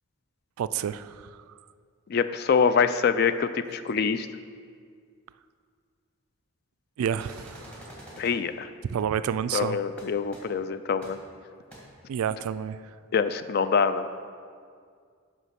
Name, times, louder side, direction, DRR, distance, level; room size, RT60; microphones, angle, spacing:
voice 1, 0.6-1.4 7.0-7.8 8.9-9.8 12.1-12.8, right 8 dB, 85° right, 14 dB, 0.3 m, -29 dB
voice 2, 2.1-4.3 8.2-8.7 9.5-11.2 13.1-14.1, left 6 dB, 45° left, 12 dB, 0.3 m, -25 dB
sound 1, 7.2-8.3 10.0-10.1 10.3-10.4 11.0-11.1 11.7-11.8, right 1 dB, 5° left, 1.5 m, -45 dB
8.1 x 5.4 x 5.8 m, 2.1 s
head